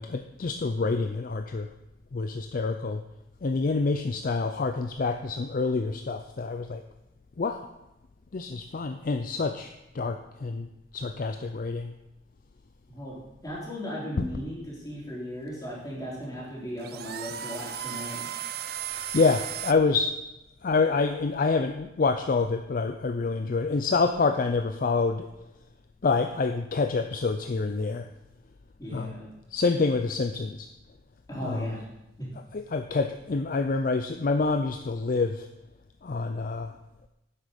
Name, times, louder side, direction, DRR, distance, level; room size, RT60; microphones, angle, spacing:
voice 1, 0.0-1.7 2.1-3.0 3.4-6.8 7.4-7.7 8.3-10.7 10.9-11.9 14.2-14.3 19.1-20.1 20.6-25.3 26.0-28.1 28.9-29.1 29.5-30.7 31.4-31.8 32.5-35.5 36.0-36.7, left 4 dB, 40° left, 7 dB, 0.4 m, -27 dB
voice 2, 13.4-18.3 28.8-29.3 31.3-31.8 32.2-32.3, equal, 20° left, -5 dB, 3.2 m, -37 dB
sound 1, 14.8-19.7, right 10 dB, 50° right, 0.5 m, -36 dB
9.9 x 8.4 x 5.1 m, 0.94 s
head